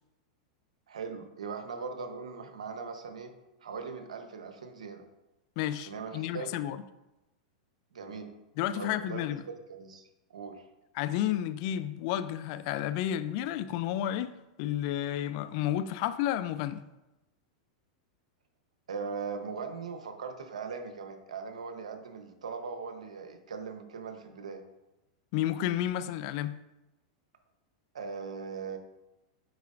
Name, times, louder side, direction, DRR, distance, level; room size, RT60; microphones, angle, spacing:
voice 1, 0.9-3.3 3.6-5.0 5.9-6.5 7.9-8.3 8.8-10.7 18.9-24.6 27.9-28.8, right 5 dB, 90° right, 6 dB, 0.9 m, -40 dB
voice 2, 5.6-6.8 8.6-9.4 11.0-14.3 14.6-16.8 25.3-26.6, left 12 dB, 55° left, 14 dB, 0.4 m, -31 dB
9.3 x 4.2 x 2.5 m, 0.97 s
hypercardioid pair, 120°, 4 cm